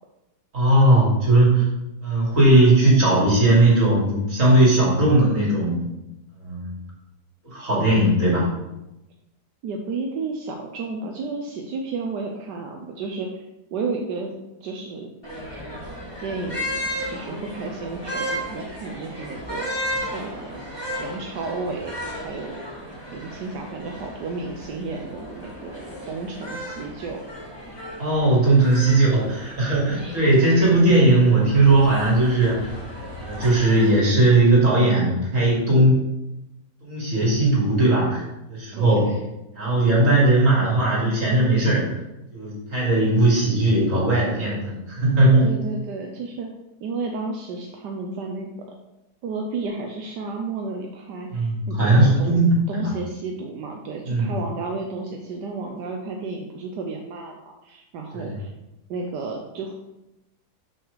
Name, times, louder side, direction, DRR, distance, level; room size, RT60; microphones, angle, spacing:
voice 1, 0.5-1.6 2.0-5.8 6.4-6.7 7.4-8.5 28.0-32.7 33.2-36.1 36.8-38.2 38.5-39.0 39.6-41.9 42.3-45.5 51.3-52.5 52.8-52.9 54.1-54.3 58.1-58.2, right 2 dB, 50° right, -4 dB, 3.0 m, -18 dB
voice 2, 9.6-15.1 16.2-16.7 17.1-20.6 21.0-22.6 23.1-27.2 38.7-39.2 45.4-46.5 46.8-48.5 49.2-52.4 52.7-58.5 58.9-59.9, right 3 dB, 80° right, 1 dB, 1.4 m, -32 dB
sound 1, 15.2-33.9, equal, 15° left, 2.6 m, -35 dB
6.4 x 6.2 x 4.9 m, 0.93 s
omnidirectional pair, 1.8 m